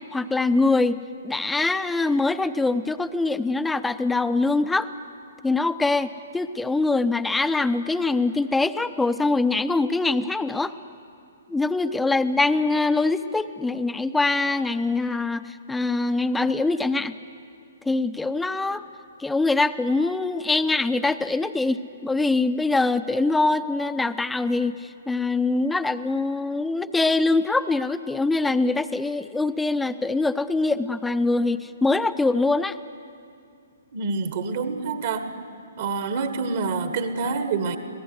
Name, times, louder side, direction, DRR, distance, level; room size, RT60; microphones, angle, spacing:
voice 1, 0.1-1.0 1.2-4.9 5.4-10.7 11.5-17.1 17.9-18.8 19.2-32.8, left 3 dB, 5° left, 13 dB, 0.6 m, -23 dB
voice 2, 33.9-35.3 35.8-37.8, right 4 dB, 50° right, 9 dB, 1.4 m, -27 dB
26.0 x 18.0 x 8.1 m, 2.4 s
figure-of-eight pair, 120°, 0 cm